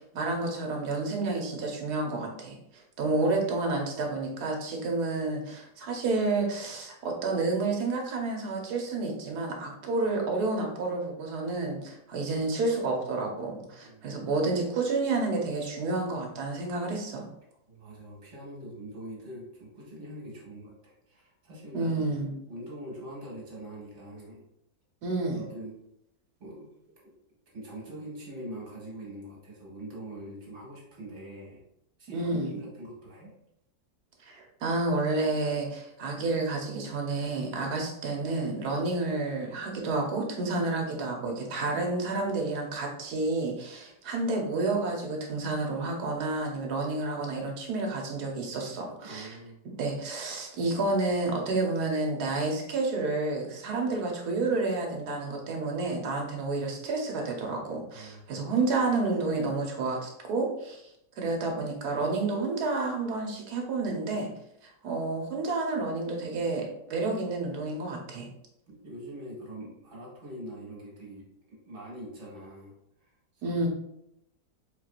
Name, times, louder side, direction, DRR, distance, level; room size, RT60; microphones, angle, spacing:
voice 1, 0.1-2.6 3.0-17.2 21.7-22.4 25.0-25.4 32.1-32.5 34.2-49.4 49.6-60.8 61.2-64.3 64.6-68.3 73.4-73.7, right 3 dB, 65° right, 1 dB, 1.4 m, -30 dB
voice 2, 13.8-14.1 17.7-22.2 22.5-24.4 25.3-25.7 26.4-26.7 27.0-27.1 27.5-31.6 32.0-33.3 49.0-49.7 57.9-58.4 68.7-72.7 73.0-73.6, right 1 dB, 45° right, -4 dB, 2.0 m, -43 dB
4.5 x 4.0 x 2.5 m, 0.81 s
omnidirectional pair, 1.9 m